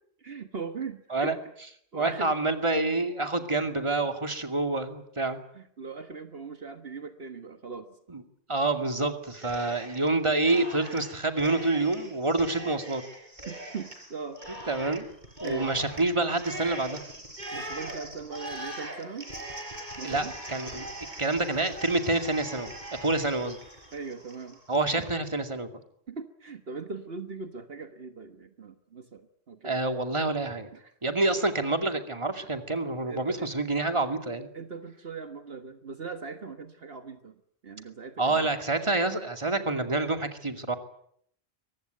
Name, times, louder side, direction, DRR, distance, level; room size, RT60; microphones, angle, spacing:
voice 1, 0.2-1.4 1.9-2.3 5.5-8.0 13.4-14.4 15.4-15.7 17.5-19.3 20.0-20.3 23.9-24.6 25.0-25.1 26.1-29.8 30.7-30.9 33.1-33.5 34.5-38.5, right 4 dB, 60° right, 8 dB, 1.7 m, -40 dB
voice 2, 1.9-5.4 8.1-8.2 8.5-13.0 14.7-15.0 15.4-17.0 20.0-20.9 21.2-22.7 23.0-23.6 24.7-25.7 29.6-30.7 31.0-34.5 38.2-40.8, right 2 dB, 25° right, 6 dB, 2.4 m, -27 dB
Cheering, 9.3-10.1 10.4-24.8, right 1 dB, 45° right, 5.6 m, -41 dB
23.5 x 20.0 x 9.4 m, 0.67 s
omnidirectional pair, 1.1 m